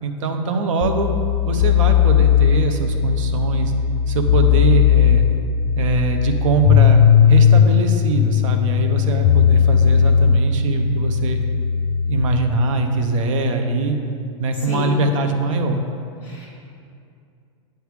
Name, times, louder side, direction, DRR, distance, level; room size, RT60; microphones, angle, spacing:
voice 1, 0.0-1.1 1.5-3.7 4.1-5.3 5.8-7.0 7.3-11.4 12.1-14.0 14.4-15.8, right 3 dB, 80° right, 5 dB, 0.8 m, -22 dB
sound 1, 0.8-12.2, left 8 dB, 80° left, 0.4 m, -17 dB
voice 2, 14.7-15.0 16.2-16.6, right 1 dB, 10° right, -7 dB, 1.2 m, -30 dB
9.1 x 3.4 x 4.8 m, 2.4 s
supercardioid pair, 165°, 16 cm